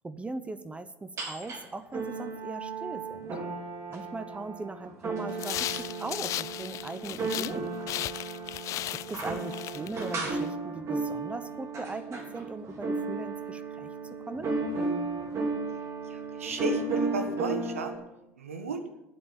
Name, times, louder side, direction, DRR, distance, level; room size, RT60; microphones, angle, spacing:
voice 1, 0.0-3.4 3.9-8.1 8.9-14.5, right 3 dB, 15° right, 12 dB, 0.8 m, -40 dB
sound 1, 1.2-1.6 1.9-17.9, right 3 dB, 45° right, 3.5 m, -34 dB
sound 2, 5.3-7.6 7.9-10.5, left 14 dB, 50° left, 0.3 m, -36 dB
voice 2, 16.0-17.9 18.4-18.8, right 4 dB, 90° right, 7 dB, 1.4 m, -34 dB
9.5 x 8.3 x 8.5 m, 0.93 s
hypercardioid pair, 75°, 7 cm